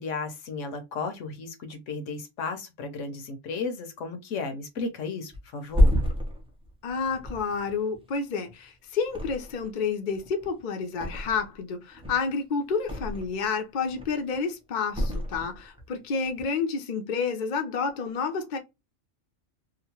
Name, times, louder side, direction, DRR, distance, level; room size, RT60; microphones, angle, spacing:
voice 1, 0.0-6.0, left 4 dB, 70° left, 1.0 m, -34 dB
Thump thud, 5.3-8.6 9.0-9.8 10.1-11.6 11.9-13.5 13.8-14.4 14.9-15.9 16.2-16.4, equal, 10° right, 0.3 m, -28 dB
voice 2, 6.8-18.6, left 5 dB, 50° left, 0.6 m, -30 dB
2.9 x 2.1 x 2.8 m
omnidirectional pair, 1.4 m